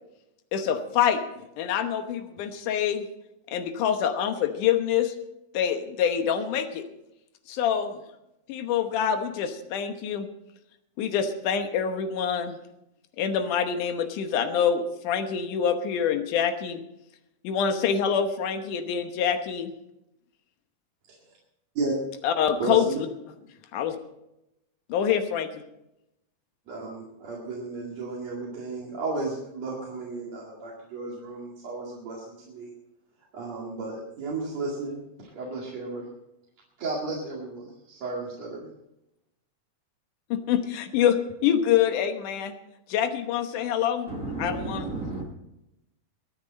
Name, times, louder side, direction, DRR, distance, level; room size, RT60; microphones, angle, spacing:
voice 1, 0.5-1.2 1.6-3.1 3.5-5.1 5.5-6.8 7.5-8.0 8.5-10.3 11.0-12.6 13.2-16.8 17.4-19.7 22.2-23.1 23.7-24.0 24.9-25.6 40.3-42.5 42.9-44.1 44.4-44.9, left 8 dB, 85° left, 7 dB, 2.6 m, -26 dB
voice 2, 22.6-23.0 26.7-32.7 33.3-35.0 35.3-36.1 36.8-38.7, right 3 dB, 60° right, -4 dB, 3.4 m, -33 dB
voice 3, 44.1-45.2, right 3 dB, 35° right, 3 dB, 1.5 m, -33 dB
23.0 x 9.6 x 4.2 m, 0.86 s
omnidirectional pair, 3.5 m